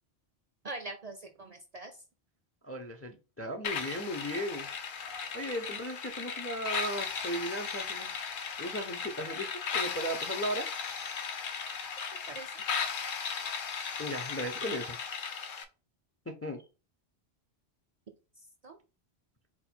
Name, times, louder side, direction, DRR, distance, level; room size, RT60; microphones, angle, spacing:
voice 1, 0.6-2.0 12.3-12.6 18.4-18.8, right 2 dB, 50° right, 0.4 m, -43 dB
voice 2, 2.6-4.7 5.3-8.3 8.6-10.7 14.0-15.0 16.3-16.6, equal, 25° left, 0.3 m, -36 dB
sound 1, 3.6-15.6, left 6 dB, 60° left, 0.7 m, -36 dB
4.1 x 2.3 x 4.3 m
omnidirectional pair, 1.1 m